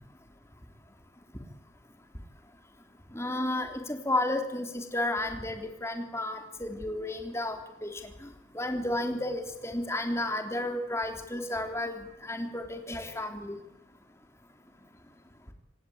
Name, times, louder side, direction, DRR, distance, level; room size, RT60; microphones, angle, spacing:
voice 1, 3.1-8.3 8.5-13.6, left 1 dB, 15° left, 5 dB, 3.2 m, -32 dB
27.0 x 18.0 x 8.7 m, 0.83 s
head